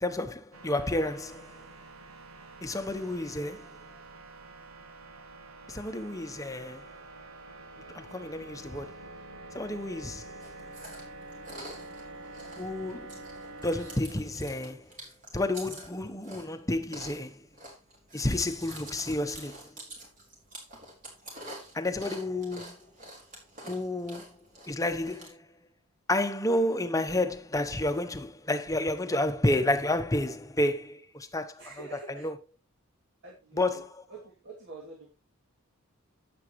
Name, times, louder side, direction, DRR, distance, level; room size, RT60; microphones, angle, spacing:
voice 1, 0.0-1.5 2.6-3.7 5.7-6.9 7.9-9.0 9.5-10.3 12.6-13.3 13.6-14.9 15.3-17.4 18.1-19.6 21.7-22.8 23.6-24.4 24.7-25.5 26.1-31.6 32.2-32.3 33.6-33.9, left 1 dB, 15° left, 0.9 m, -30 dB
sound 1, 0.5-14.0, right 2 dB, 90° right, 1.6 m, -47 dB
Chewing mastication, 10.4-25.3, right 1 dB, 40° right, 4.8 m, -48 dB
voice 2, 31.6-32.3 33.2-35.1, right 3 dB, 55° right, 2.6 m, -47 dB
11.5 x 8.8 x 3.1 m
head